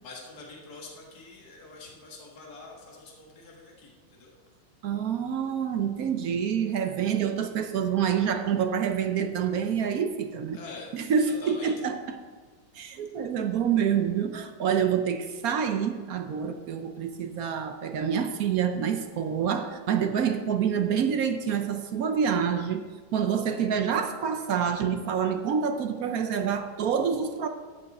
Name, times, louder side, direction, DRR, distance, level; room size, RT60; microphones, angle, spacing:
voice 1, 0.0-4.3 10.5-11.7, left 3 dB, 50° left, -2 dB, 2.2 m, -46 dB
voice 2, 4.8-10.6 10.9-12.2 12.7-22.9 23.1-27.5, right 7 dB, 65° right, 7 dB, 0.9 m, -27 dB
14.5 x 7.8 x 4.2 m, 1.5 s
omnidirectional pair, 2.2 m